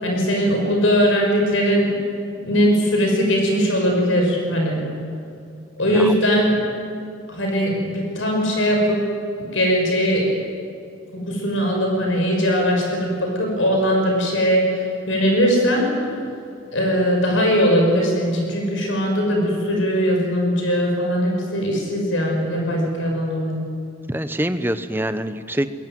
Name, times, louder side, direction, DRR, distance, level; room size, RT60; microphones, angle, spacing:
voice 1, 0.0-1.9 2.4-4.9 5.8-6.6 7.3-9.0 9.4-10.3 11.1-15.9 16.7-23.6, equal, 75° left, 1 dB, 5.9 m, -20 dB
voice 2, 5.8-6.2 24.1-25.7, right 1 dB, 10° right, 11 dB, 0.9 m, -25 dB
22.0 x 22.0 x 9.4 m, 2.5 s
head